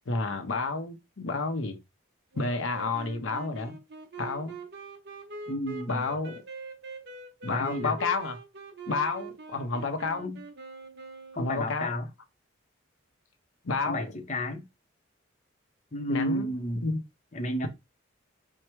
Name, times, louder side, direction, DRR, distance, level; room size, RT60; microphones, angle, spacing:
voice 1, 0.1-1.8 2.3-3.8 4.2-4.6 5.9-6.4 7.4-8.4 8.9-10.2 11.3-11.9 13.6-14.1 16.1-17.0, left 3 dB, 80° left, 0.8 m, -30 dB
Wind instrument woodwind instrument, 2.3-11.8, right 3 dB, 55° right, 0.9 m, -43 dB
voice 2, 5.5-6.0 7.5-8.0 10.2-10.4 11.4-12.1 13.8-14.6 15.9-16.9 17.3-17.7, equal, 35° left, 0.7 m, -32 dB
4.5 x 2.1 x 4.5 m
head